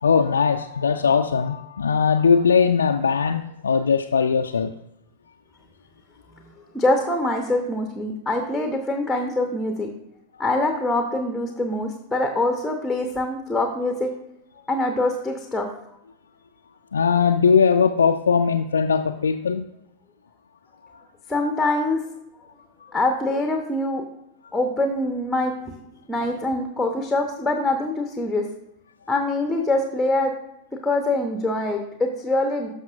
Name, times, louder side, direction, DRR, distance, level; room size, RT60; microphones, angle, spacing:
voice 1, 0.0-4.7 16.9-19.7 22.8-22.9, left 6 dB, 70° left, 5 dB, 0.3 m, -20 dB
voice 2, 6.7-9.9 10.4-14.1 14.7-15.7 21.3-22.0 22.9-24.0 24.5-25.7 26.1-28.5 29.1-30.3 30.8-32.7, left 2 dB, 5° left, 4 dB, 0.8 m, -24 dB
12.5 x 5.5 x 2.5 m, 0.83 s
figure-of-eight pair, 90°, 0 cm